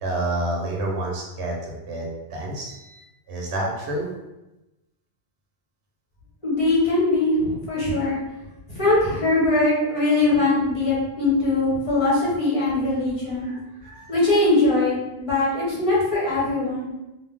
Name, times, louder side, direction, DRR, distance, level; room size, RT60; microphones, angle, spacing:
voice 1, 0.0-3.0 3.3-4.1 13.4-14.4, right 1 dB, 75° right, -1 dB, 0.9 m, -29 dB
voice 2, 6.4-8.2 8.7-13.5 14.1-16.9, left 2 dB, 30° left, -8 dB, 1.1 m, -21 dB
2.6 x 2.0 x 3.4 m, 0.99 s
omnidirectional pair, 1.2 m